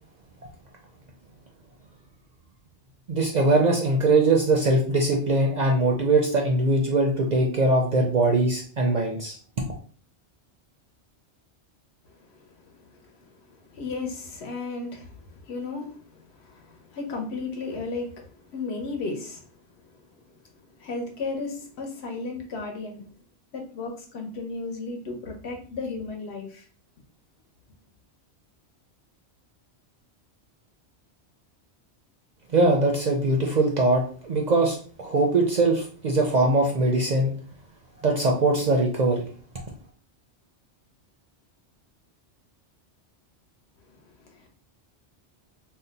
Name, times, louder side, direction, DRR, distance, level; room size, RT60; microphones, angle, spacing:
voice 1, 3.1-9.4 32.5-37.3 38.0-39.2, right 2 dB, 55° right, 0.5 m, -21 dB
voice 2, 12.0-19.5 19.8-23.1 23.5-26.6 43.8-44.5, left 3 dB, 70° left, 1.0 m, -35 dB
2.7 x 2.1 x 3.9 m
omnidirectional pair, 1.2 m